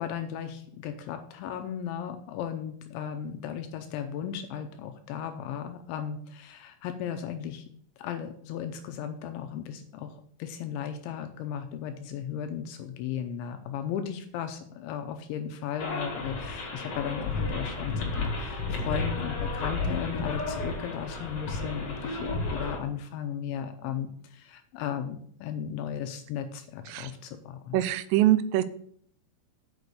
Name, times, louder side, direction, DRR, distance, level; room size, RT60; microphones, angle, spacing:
voice 1, 0.0-7.6 8.0-10.1 10.4-27.9, left 8 dB, 80° left, 7 dB, 2.8 m, -36 dB
sound 1, 15.8-22.8, left 3 dB, 50° left, 1.9 m, -32 dB
voice 2, 27.7-28.6, right 13 dB, 85° right, 12 dB, 3.2 m, -23 dB
8.2 x 6.0 x 6.6 m, 0.62 s
omnidirectional pair, 5.8 m